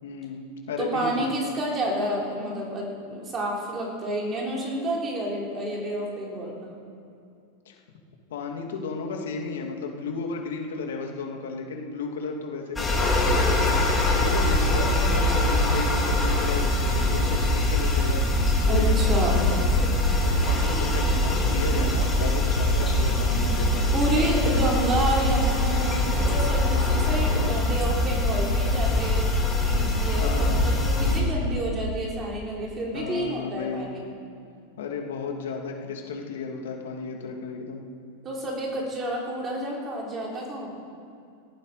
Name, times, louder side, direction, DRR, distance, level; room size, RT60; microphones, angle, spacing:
voice 1, 0.0-1.3 7.7-7.8 8.3-18.2 18.6-19.8 20.2-23.9 30.2-30.7 31.0-31.4 32.9-33.9 34.8-37.8, left 4 dB, 85° left, 1 dB, 2.6 m, -34 dB
voice 2, 0.8-6.7 18.7-19.5 23.9-29.3 29.6-34.0 38.2-40.7, right 1 dB, 20° right, -2 dB, 3.6 m, -29 dB
sound 1, 12.8-31.2, left 1 dB, 10° left, 2.6 m, -23 dB
18.5 x 15.0 x 5.0 m, 2.4 s
supercardioid pair, 165°, 0 cm